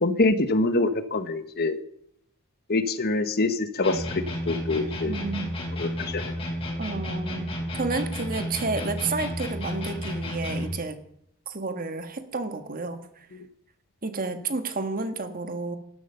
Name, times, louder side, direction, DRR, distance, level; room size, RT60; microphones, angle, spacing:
voice 1, 0.0-1.8 2.7-5.1 5.8-6.2, left 2 dB, 45° left, 11 dB, 1.1 m, -25 dB
sound 1, 3.8-10.8, equal, 25° left, 5.5 m, -32 dB
voice 2, 5.1-5.5 6.8-11.0 11.5-13.0 14.0-15.8, right 3 dB, 40° right, 9 dB, 1.6 m, -31 dB
12.5 x 12.5 x 6.9 m, 0.70 s
head